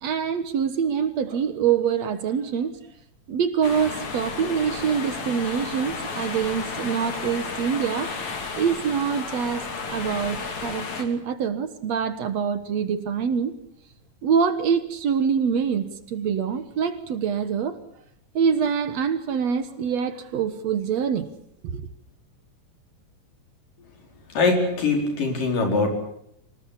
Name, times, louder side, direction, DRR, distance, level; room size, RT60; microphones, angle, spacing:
voice 1, 0.0-2.8 3.3-8.2 8.5-13.6 14.2-17.8 18.3-21.3 21.6-21.9, right 7 dB, 60° right, 2.3 m, -25 dB
sound 1, 3.6-11.0, left 4 dB, 60° left, 4.1 m, -33 dB
voice 2, 24.3-25.9, left 3 dB, 80° left, 6.3 m, -22 dB
25.5 x 19.0 x 8.4 m
omnidirectional pair, 3.8 m